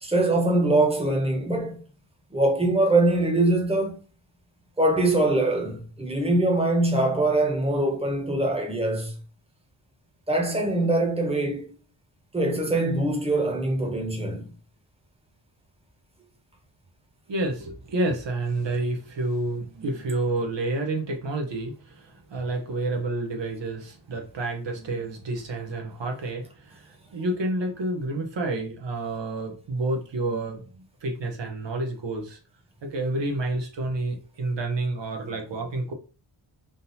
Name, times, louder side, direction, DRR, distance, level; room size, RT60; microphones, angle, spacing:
voice 1, 0.0-1.8 2.3-3.9 4.8-9.1 10.3-11.7 12.3-14.5, right 2 dB, 10° right, 1.2 m, -23 dB
voice 2, 17.3-30.6 31.0-32.4 32.8-35.9, right 2 dB, 65° right, 1.0 m, -29 dB
3.7 x 2.7 x 4.1 m
wide cardioid pair, 85°, 47 cm